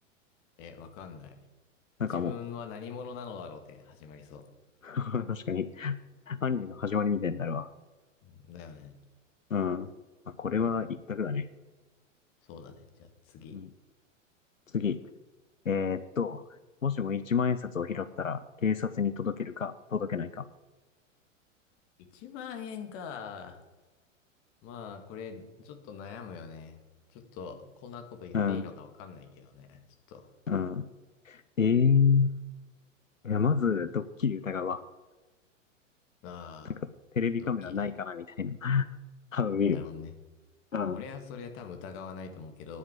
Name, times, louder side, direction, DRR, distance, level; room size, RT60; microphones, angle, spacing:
voice 1, 0.6-1.4 2.0-4.5 8.2-9.0 10.5-10.9 12.4-13.6 22.0-23.6 24.6-26.8 27.1-29.8 30.1-30.3 36.2-36.8 37.4-37.9 39.6-40.1 40.8-42.8, left 6 dB, 35° left, 6 dB, 2.0 m, -44 dB
voice 2, 2.0-2.4 4.8-6.0 6.3-7.7 9.5-9.9 10.4-11.4 13.5-13.7 14.7-15.0 15.7-16.4 16.8-20.5 28.3-28.7 30.5-30.9 31.3-32.3 33.2-34.8 37.2-38.9 39.3-39.8 40.7-41.0, left 6 dB, 85° left, 14 dB, 0.6 m, -29 dB
10.0 x 8.1 x 8.2 m, 1.3 s
figure-of-eight pair, 100°, 38 cm